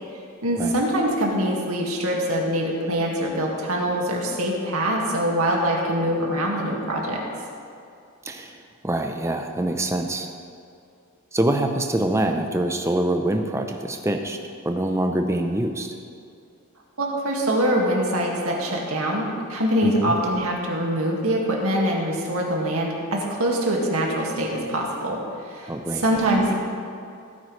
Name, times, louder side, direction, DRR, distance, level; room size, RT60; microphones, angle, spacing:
voice 1, 0.4-7.2 17.0-25.2 25.5-26.5, right 1 dB, 75° right, -1 dB, 2.0 m, -24 dB
voice 2, 8.8-10.3 11.3-14.4 14.6-15.9 19.8-20.1 25.7-26.0, right 1 dB, 15° right, 5 dB, 0.7 m, -24 dB
16.5 x 9.4 x 3.2 m, 2.4 s
head